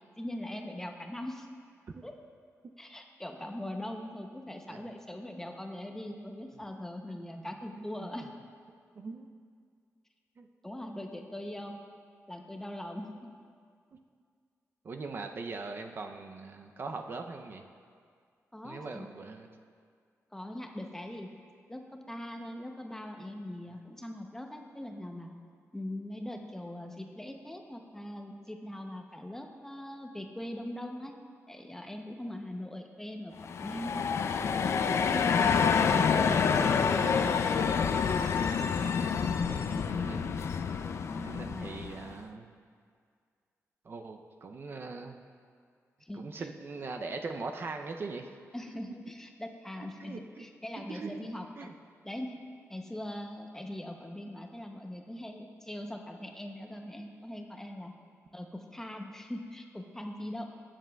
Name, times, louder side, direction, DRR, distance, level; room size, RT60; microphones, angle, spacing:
voice 1, 0.2-1.5 2.0-2.2 2.8-8.3 10.6-11.8 12.3-13.1 18.5-19.1 20.3-21.3 21.7-25.3 25.7-31.1 31.5-34.1 36.9-37.3 41.1-41.9 46.0-46.5 48.5-51.5 52.0-52.4 52.7-57.9 58.3-60.5, left 1 dB, 10° left, 3 dB, 0.7 m, -41 dB
voice 2, 7.1-7.5 7.8-8.1 9.0-9.3 10.4-10.5 14.8-17.6 18.6-19.5 39.0-40.4 41.2-42.5 43.9-45.2 46.1-48.3 50.0-50.5 50.9-51.3 51.6-51.7, right 3 dB, 45° right, 5 dB, 0.5 m, -41 dB
sound 1, 33.4-42.1, left 6 dB, 60° left, 0.4 m, -28 dB
18.5 x 7.3 x 2.3 m, 2.1 s
wide cardioid pair, 125°, 5 cm